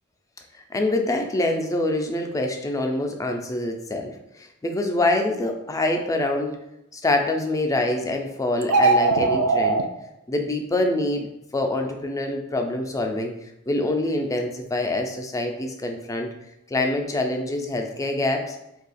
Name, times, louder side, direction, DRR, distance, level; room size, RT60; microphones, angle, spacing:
voice 1, 0.7-6.6 6.9-9.8 10.3-11.3 11.5-13.3 13.7-16.3 16.7-18.6, left 2 dB, 15° left, 3 dB, 0.3 m, -25 dB
sound 1, 8.6-9.8, right 3 dB, 80° right, 0.4 m, -19 dB
2.7 x 2.3 x 4.0 m, 0.88 s
head